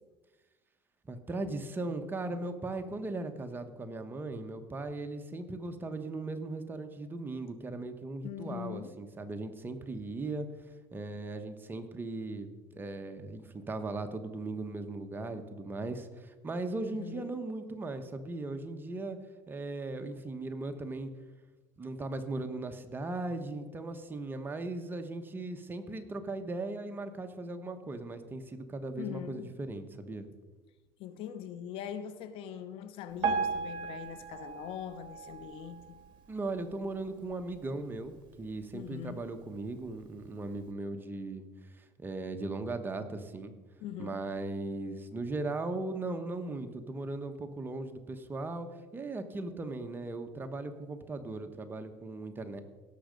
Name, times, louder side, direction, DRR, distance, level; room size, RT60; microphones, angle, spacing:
voice 1, 1.1-10.5 10.9-19.2 19.5-21.1 21.8-30.3 36.3-41.5 41.7-43.5 44.0-48.7 48.9-52.6, right 2 dB, 20° right, 7 dB, 1.1 m, -38 dB
voice 2, 8.2-8.9 16.8-17.3 29.0-29.5 31.0-36.0 38.7-39.2 43.8-44.2, left 9 dB, 65° left, 12 dB, 1.0 m, -42 dB
Piano, 33.2-36.3 36.8-37.0 37.3-37.4 38.1-38.2 38.8-38.9, right 5 dB, 50° right, 1.7 m, -35 dB
17.0 x 6.5 x 5.2 m, 1.2 s
supercardioid pair, 115°, 10 cm